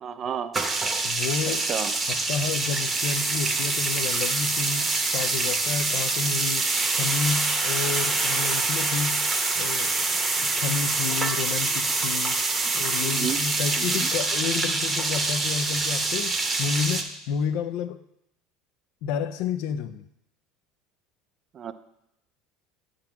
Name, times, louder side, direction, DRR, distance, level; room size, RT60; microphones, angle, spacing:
voice 1, 0.0-0.6 1.5-2.0 13.0-13.4 13.8-14.1 21.5-21.7, right 8 dB, 35° right, 0.4 m, -32 dB
sound 1, 0.5-17.0, right 3 dB, 20° right, 0.8 m, -25 dB
voice 2, 1.0-1.6 2.1-6.7 6.9-9.2 9.5-10.1 10.4-12.4 12.7-18.0 19.0-20.0, left 7 dB, 70° left, 0.5 m, -30 dB
8.8 x 3.8 x 5.8 m
supercardioid pair, 130°, 0 cm